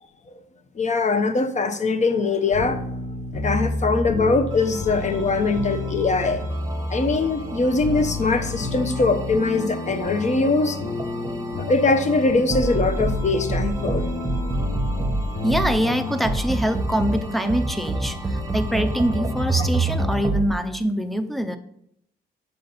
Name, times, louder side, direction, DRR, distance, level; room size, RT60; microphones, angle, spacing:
voice 1, 0.8-2.8 3.3-6.4 6.9-10.8 11.6-14.1, left 3 dB, 35° left, 9 dB, 0.7 m, -22 dB
sound 1, 2.5-16.6, left 3 dB, 65° left, 1.7 m, -31 dB
sound 2, 4.5-20.5, right 2 dB, 15° right, 0.9 m, -29 dB
voice 2, 15.4-21.6, equal, ahead, 8 dB, 0.5 m, -24 dB
5.6 x 5.1 x 4.0 m, 0.75 s
cardioid pair, 90°, 20 cm